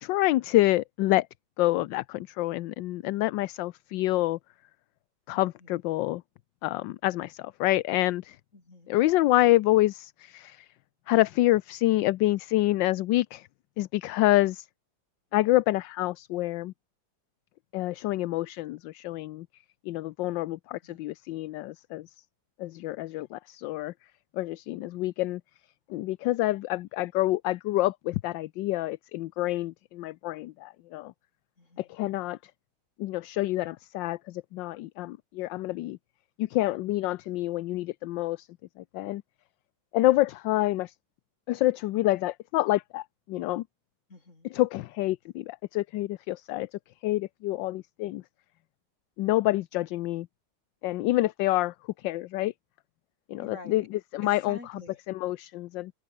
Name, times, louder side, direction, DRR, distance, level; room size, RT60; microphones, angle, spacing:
voice 1, 0.0-1.3 1.6-4.4 5.3-6.2 6.6-8.4 8.9-10.6 11.1-13.4 13.8-14.7 15.3-16.7 17.7-19.5 19.9-22.0 22.6-23.9 24.4-25.4 25.9-31.1 31.9-32.4 33.0-36.0 36.4-38.5 38.9-39.2 39.9-40.9 41.5-43.0 43.3-43.6 44.5-46.7 47.0-48.2 49.2-50.3 50.8-51.7 52.0-52.5 53.3-54.6 55.1-55.9, left 17 dB, 75° left, 1.3 m, -27 dB
voice 2, 5.3-5.7 8.5-8.9 20.8-21.0 31.6-31.9 44.1-44.5 53.4-53.9 54.2-55.0, left 2 dB, 40° left, 4.6 m, -47 dB
omnidirectional pair, 2.1 m